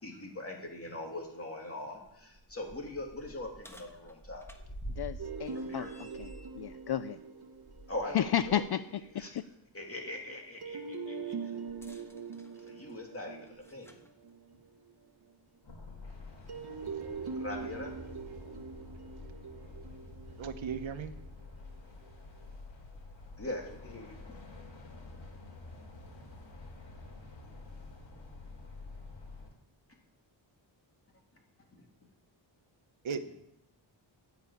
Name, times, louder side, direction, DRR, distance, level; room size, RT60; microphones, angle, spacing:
voice 1, 0.0-4.4 5.5-5.9 7.9-8.6 9.1-9.3 9.7-11.5 12.6-14.0 17.3-17.9 23.4-24.1 31.7-31.8, left 2 dB, 30° left, 1 dB, 2.6 m, -41 dB
sound 1, 2.0-8.7 9.1-9.2 11.7-14.1 15.1-15.2 16.0-16.1, right 1 dB, 5° left, 1.2 m, -48 dB
voice 2, 5.0-7.2 8.1-8.8 9.1-9.4, left 10 dB, 60° left, 12 dB, 0.5 m, -33 dB
sound 2, 5.2-9.0 10.6-15.1 16.5-21.7, right 5 dB, 55° right, 1.2 m, -43 dB
sound 3, 15.6-29.5, left 3 dB, 75° left, 3.9 m, -49 dB
voice 3, 20.4-21.1 33.0-33.4, right 6 dB, 75° right, 10 dB, 1.0 m, -36 dB
14.0 x 5.9 x 8.5 m, 0.81 s
wide cardioid pair, 155°, 46 cm